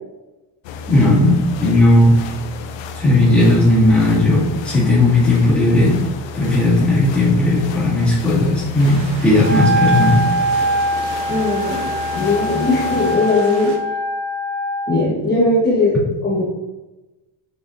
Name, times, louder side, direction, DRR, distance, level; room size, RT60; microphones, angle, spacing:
sound 1, 0.6-13.2, left 4 dB, 80° left, 0.7 m, -32 dB
voice 1, 0.9-2.2 3.0-6.0 6.3-10.2, left 2 dB, 5° left, -9 dB, 2.3 m, -15 dB
sound 2, 8.8-13.8, right 3 dB, 80° right, 1.4 m, -35 dB
Wind instrument woodwind instrument, 9.4-15.0, right 1 dB, 25° right, 0.6 m, -22 dB
voice 2, 11.3-13.7 14.9-15.9 16.2-16.4, left 2 dB, 20° left, -7 dB, 1.2 m, -18 dB
6.6 x 6.5 x 2.6 m, 1.1 s
cardioid pair, 175°, 44 cm